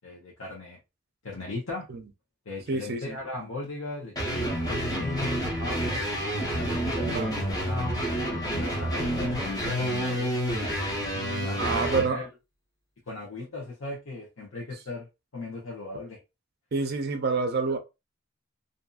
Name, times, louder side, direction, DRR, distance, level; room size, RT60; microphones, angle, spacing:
voice 1, 0.0-0.8 1.2-1.9 2.5-6.0 6.5-8.0 8.5-10.4 11.3-12.3 13.1-15.1 15.3-16.2, left 2 dB, 85° left, 0.9 m, -37 dB
voice 2, 2.7-3.2 7.0-7.3 11.1-12.3 16.7-17.8, right 4 dB, 55° right, 0.5 m, -28 dB
sound 1, 4.2-12.1, equal, 20° left, 0.8 m, -29 dB
2.6 x 2.6 x 2.3 m
head